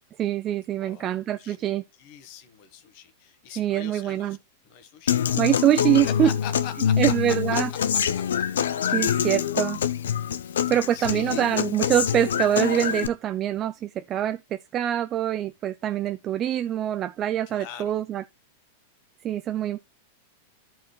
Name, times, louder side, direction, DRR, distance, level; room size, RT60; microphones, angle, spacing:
voice 1, 0.2-1.8 3.6-4.4 5.4-6.3 7.0-7.7 8.9-9.8 10.7-18.2 19.2-19.8, right 11 dB, 35° right, 0.4 m, -24 dB
voice 2, 0.8-1.6 2.0-4.4 4.6-5.2 6.2-7.4 7.7-8.9 10.3-11.5 17.5-18.0, left 9 dB, 55° left, 1.4 m, -43 dB
Human voice / Acoustic guitar, 5.1-13.1, left 8 dB, 80° left, 0.6 m, -25 dB
13.5 x 4.6 x 3.1 m
hypercardioid pair, 105°, 0 cm